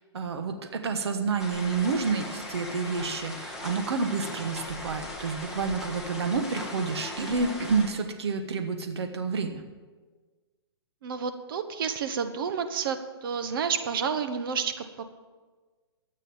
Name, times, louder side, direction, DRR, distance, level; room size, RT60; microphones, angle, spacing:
voice 1, 0.1-9.6, right 4 dB, 75° right, 6 dB, 1.4 m, -29 dB
sound 1, 1.4-7.9, left 1 dB, 5° right, 2.3 m, -39 dB
voice 2, 11.0-14.8, right 6 dB, 55° right, 8 dB, 1.2 m, -30 dB
13.0 x 8.3 x 7.2 m, 1.4 s
hypercardioid pair, 145°, 14 cm